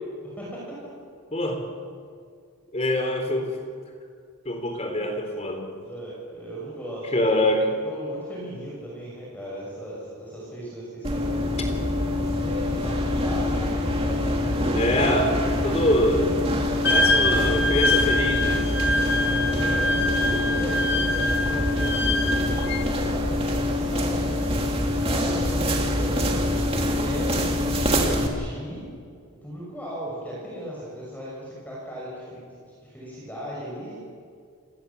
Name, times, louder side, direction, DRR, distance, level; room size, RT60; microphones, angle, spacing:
voice 1, 0.2-0.9 5.8-11.8 12.4-14.4 19.0-24.2 24.8-27.4 28.0-28.8 29.4-34.0, equal, 10° left, -6 dB, 6.3 m, -37 dB
voice 2, 1.3-1.6 2.7-3.5 4.4-5.7 7.1-7.7 14.7-16.3 16.6-18.7, left 1 dB, 30° left, 4 dB, 3.8 m, -24 dB
sound 1, 11.0-28.3, left 1 dB, 25° right, 2.5 m, -25 dB
Wind instrument woodwind instrument, 16.8-22.8, left 2 dB, 50° left, 2.3 m, -25 dB
28.5 x 20.0 x 7.2 m, 2.2 s
head